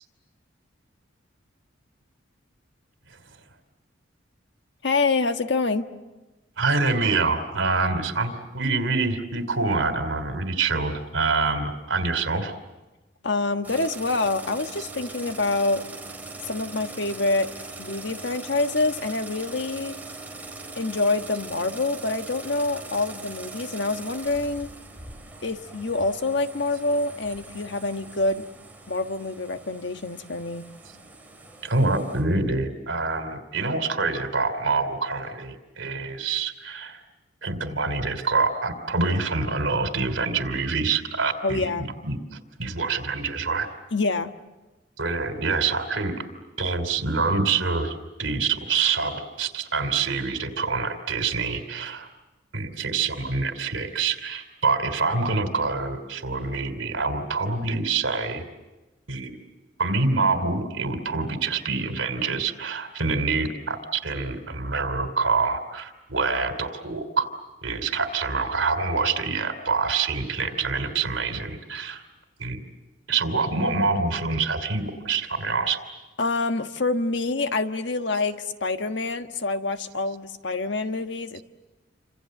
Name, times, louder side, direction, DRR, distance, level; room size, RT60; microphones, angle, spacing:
voice 1, 4.8-5.9 13.2-15.8 16.4-17.5 17.8-19.9 20.7-24.7 25.4-28.5 28.9-30.7 41.4-41.9 43.9-44.3 76.2-81.4, left 3 dB, 65° left, 7 dB, 1.4 m, -26 dB
voice 2, 6.6-12.5 31.6-37.0 37.4-43.7 45.0-46.2 46.6-52.1 52.5-58.4 59.1-59.4 59.8-67.3 67.6-72.0 72.4-72.6 73.1-75.8, right 4 dB, 80° right, 9 dB, 3.1 m, -26 dB
sound 1, 13.6-32.2, right 3 dB, 10° right, 3.7 m, -41 dB
28.5 x 26.5 x 7.8 m, 1.1 s
head